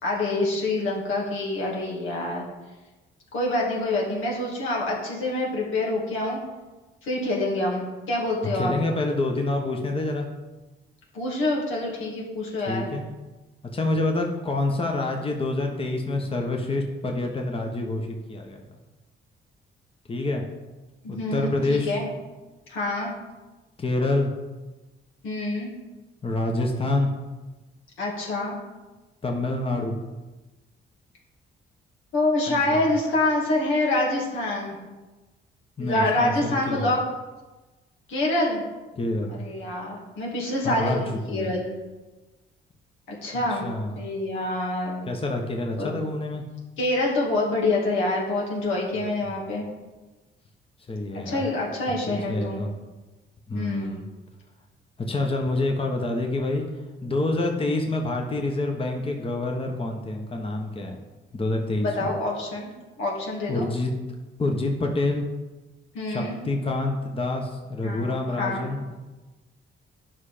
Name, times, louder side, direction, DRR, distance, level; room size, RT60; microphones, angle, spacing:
voice 1, 0.0-2.4 3.3-6.4 7.0-8.7 11.1-12.9 21.0-22.1 22.7-23.1 25.2-25.7 28.0-28.6 32.1-34.8 35.8-37.0 38.1-38.6 39.4-41.7 43.1-45.0 45.8-46.0 46.8-49.6 51.2-52.6 53.5-53.9 61.8-62.7 63.0-63.7 65.9-66.4 67.8-68.7, left 2 dB, 80° left, -3 dB, 2.5 m, -26 dB
voice 2, 8.5-10.3 12.7-13.0 13.7-18.6 20.1-20.4 21.1-22.0 23.8-24.3 26.2-27.1 29.2-30.0 32.5-32.8 35.8-36.9 39.0-39.4 40.6-41.0 41.3-41.5 43.3-44.0 45.0-46.4 49.3-49.6 50.9-51.4 52.1-52.7 53.5-54.0 55.1-56.7 57.0-61.0 61.3-62.1 63.5-63.9 64.4-65.2 66.1-69.0, left 2 dB, 25° left, 2 dB, 1.2 m, -27 dB
9.4 x 5.8 x 5.0 m, 1.2 s
cardioid pair, 90°, 20 cm